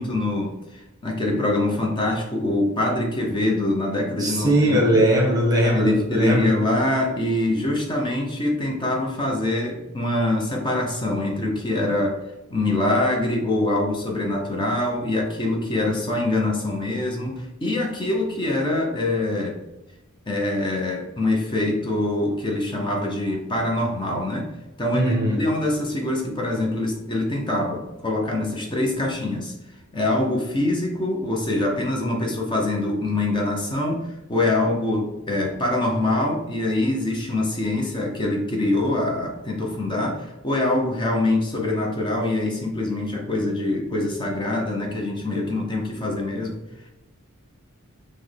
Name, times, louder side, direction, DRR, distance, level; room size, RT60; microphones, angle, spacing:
voice 1, 0.0-5.0 5.7-19.6 20.3-24.5 24.8-29.5 29.9-46.6, left 2 dB, 20° left, 0 dB, 0.6 m, -24 dB
voice 2, 4.2-6.5 24.9-25.4, right 1 dB, 20° right, -2 dB, 0.9 m, -20 dB
5.8 x 2.1 x 3.2 m, 0.98 s
head